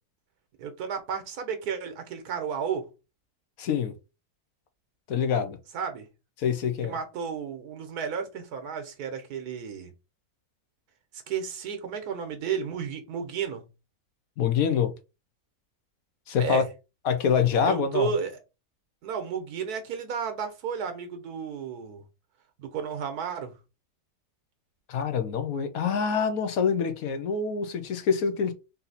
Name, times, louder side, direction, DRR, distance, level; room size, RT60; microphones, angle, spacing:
voice 1, 0.6-2.9 5.7-6.1 6.8-9.9 11.3-13.6 16.4-16.7 17.7-18.4 19.0-22.0 22.6-23.5, right 6 dB, 80° right, 1.4 m, -32 dB
voice 2, 3.6-3.9 5.1-5.6 6.4-6.9 14.4-14.9 16.3-16.6 17.0-18.1 24.9-28.5, left 6 dB, 70° left, 1.2 m, -25 dB
4.0 x 2.7 x 4.1 m
omnidirectional pair, 1.6 m